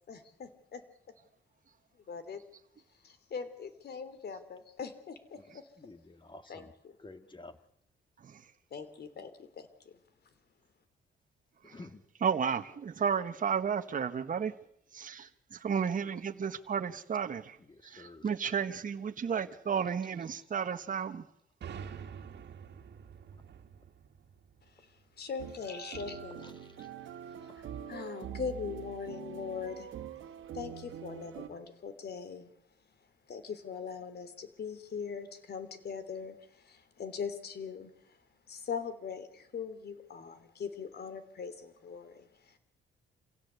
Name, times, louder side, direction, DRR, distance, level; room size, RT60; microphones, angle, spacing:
voice 1, 0.1-0.8 2.1-2.4 3.0-5.7 6.5-6.9 8.7-9.9 24.8-24.9 25.2-26.6 27.4-27.5 27.9-29.9 30.5-32.5 33.3-37.9 38.5-42.6, left 6 dB, 55° left, 3.1 m, -41 dB
voice 2, 5.3-6.7 7.0-7.6 11.6-12.0 17.6-18.3 23.3-23.4 26.4-26.9 27.5-27.7, left 2 dB, 25° left, 2.1 m, -52 dB
voice 3, 8.2-8.5 11.6-11.7 12.2-14.5 14.9-17.6 17.8-21.3, right 7 dB, 40° right, 1.4 m, -33 dB
sound 1, 21.6-25.3, right 7 dB, 60° right, 2.1 m, -47 dB
sound 2, 25.4-31.5, right 10 dB, 75° right, 1.7 m, -44 dB
27.0 x 16.5 x 8.2 m
cardioid pair, 90°, 20 cm